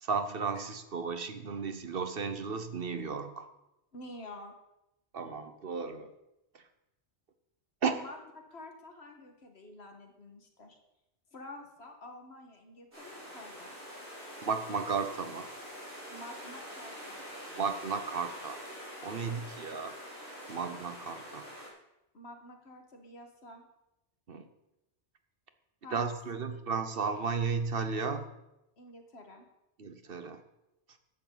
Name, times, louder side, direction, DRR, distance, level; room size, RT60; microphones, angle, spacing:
voice 1, 0.0-3.5 5.1-6.1 7.8-8.0 14.4-15.5 17.5-18.6 19.0-19.9 20.5-21.5 24.3-24.4 25.9-28.3 29.8-30.4, right 5 dB, 55° right, 9 dB, 1.1 m, -34 dB
voice 2, 3.9-4.5 7.9-10.8 11.3-13.7 16.1-17.2 19.2-19.5 22.1-23.7 25.8-26.1 28.8-29.5, left 1 dB, 65° left, 4 dB, 2.0 m, -49 dB
sound 1, 12.9-21.7, equal, 75° right, 5.4 m, -45 dB
14.5 x 10.5 x 4.0 m, 0.90 s
omnidirectional pair, 1.2 m